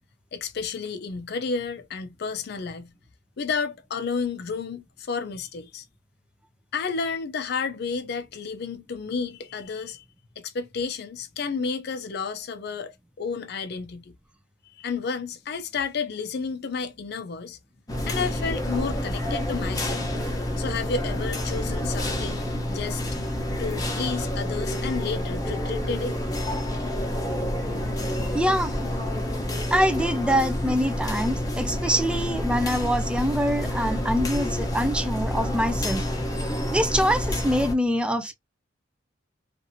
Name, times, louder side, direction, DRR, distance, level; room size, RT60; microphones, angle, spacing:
voice 1, 0.3-2.9 3.4-5.8 6.7-10.0 10.4-14.1 14.7-17.6 18.1-20.1 20.5-23.0 23.6-26.2, left 5 dB, 55° left, 0.5 m, -31 dB
sound 1, 17.9-37.7, left 1 dB, 20° left, 0.8 m, -28 dB
voice 2, 28.3-28.7 29.7-36.1 36.3-38.3, equal, 5° right, 0.3 m, -25 dB
2.7 x 2.5 x 2.6 m
head